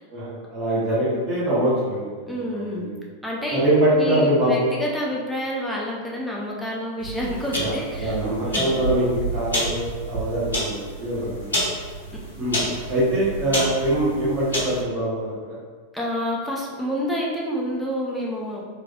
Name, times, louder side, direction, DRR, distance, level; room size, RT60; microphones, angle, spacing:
voice 1, 0.1-2.9 3.5-4.7 7.6-11.6 12.4-12.6 12.9-15.5, right 1 dB, 40° right, -8 dB, 1.0 m, -23 dB
voice 2, 2.3-2.9 3.2-3.6 3.9-8.8 15.9-18.7, equal, ahead, -4 dB, 0.6 m, -28 dB
sound 1, 7.0-14.8, right 1 dB, 70° left, 1.1 m, -29 dB
3.7 x 3.1 x 2.3 m, 1.5 s
figure-of-eight pair, 90°, 0 cm